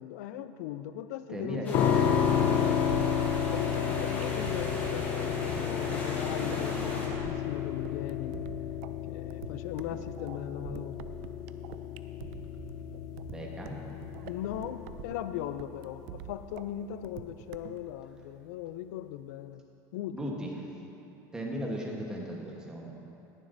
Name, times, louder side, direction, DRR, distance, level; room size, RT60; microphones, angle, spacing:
voice 1, 0.0-2.3 3.5-8.4 9.1-11.1 14.3-19.6 19.9-20.3 21.5-21.7, left 11 dB, 85° left, 12 dB, 0.4 m, -39 dB
voice 2, 1.3-2.8 13.3-13.8 20.1-20.5 21.3-23.0, equal, 10° right, -2 dB, 1.2 m, -37 dB
sound 1, 1.6-7.1, left 1 dB, 20° left, 1.5 m, -38 dB
sound 2, 1.7-16.6, left 8 dB, 50° left, 0.7 m, -32 dB
sound 3, 2.4-17.8, right 12 dB, 65° right, 0.4 m, -46 dB
19.0 x 7.3 x 2.7 m, 2.9 s
cardioid pair, 155°, 9 cm